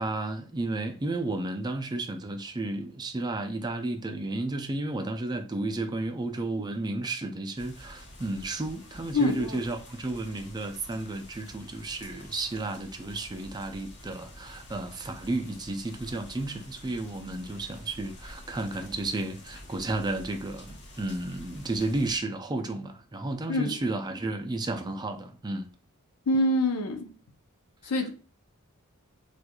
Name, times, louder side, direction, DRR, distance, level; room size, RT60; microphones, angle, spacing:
voice 1, 0.0-25.7, right 2 dB, 20° right, 0.4 m, -32 dB
sound 1, 7.5-22.2, left 1 dB, 55° left, 0.9 m, -48 dB
voice 2, 9.1-9.6 23.5-23.7 26.3-27.1 27.9-28.1, left 2 dB, 90° left, 0.6 m, -25 dB
4.4 x 2.4 x 2.2 m
head